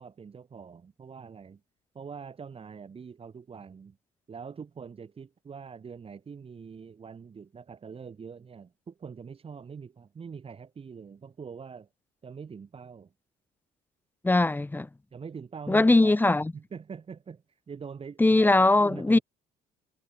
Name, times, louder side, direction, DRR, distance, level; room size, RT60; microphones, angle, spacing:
voice 1, 0.0-1.6 1.9-4.0 4.3-11.9 12.2-13.1 15.1-16.2 16.5-18.5 18.8-19.2, right 6 dB, 35° right, 5.6 m, -44 dB
voice 2, 14.2-14.9 15.7-16.5 18.2-19.2, left 2 dB, 10° left, 1.3 m, -21 dB
cardioid pair, 110°, 17 cm